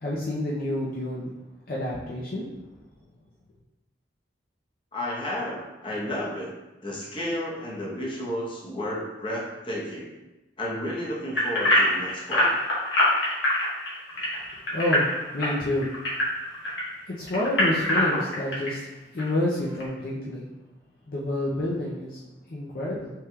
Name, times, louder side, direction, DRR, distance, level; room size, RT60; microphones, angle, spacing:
voice 1, 0.0-1.3 1.7-2.5 14.1-16.5 17.1-18.9 19.1-20.5 21.0-23.1, left 1 dB, 50° left, -5 dB, 0.5 m, -29 dB
voice 2, 4.9-6.5 6.8-10.1 10.6-12.5, left 1 dB, 30° left, -4 dB, 0.9 m, -32 dB
sound 1, 11.3-16.8 17.3-18.7 19.2-19.3 19.8-19.9, left 1 dB, 80° left, 1.4 m, -23 dB
5.6 x 3.5 x 2.3 m, 1.1 s
head